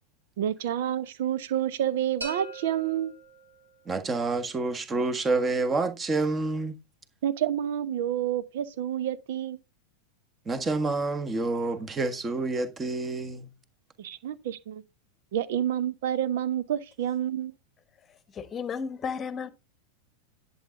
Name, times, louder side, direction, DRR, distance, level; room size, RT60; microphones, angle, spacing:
voice 1, 0.4-3.1 7.2-9.6 14.0-14.8 15.3-17.5, right 10 dB, 55° right, 1.0 m, -29 dB
sound 1, 2.2-4.0, right 3 dB, 75° right, 3.6 m, -41 dB
voice 2, 3.8-6.7 10.4-13.5, right 3 dB, 20° right, 1.6 m, -28 dB
voice 3, 18.1-19.5, left 6 dB, 20° left, 1.2 m, -34 dB
11.0 x 8.2 x 3.6 m
figure-of-eight pair, 90°, 0 cm